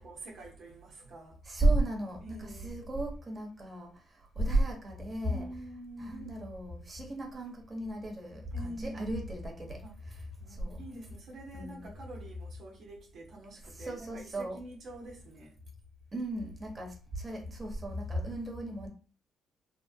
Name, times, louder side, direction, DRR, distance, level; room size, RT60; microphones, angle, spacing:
voice 1, 0.0-1.4 2.2-2.8 5.3-6.3 8.5-9.1 9.8-9.9 10.4-15.6, right 1 dB, 65° right, 0.7 m, -46 dB
voice 2, 1.4-5.4 6.0-10.2 10.5-10.8 11.5-11.9 13.7-14.6 16.1-18.9, right 1 dB, 25° right, 1.0 m, -34 dB
3.1 x 2.1 x 2.7 m
cardioid pair, 90°, 0 cm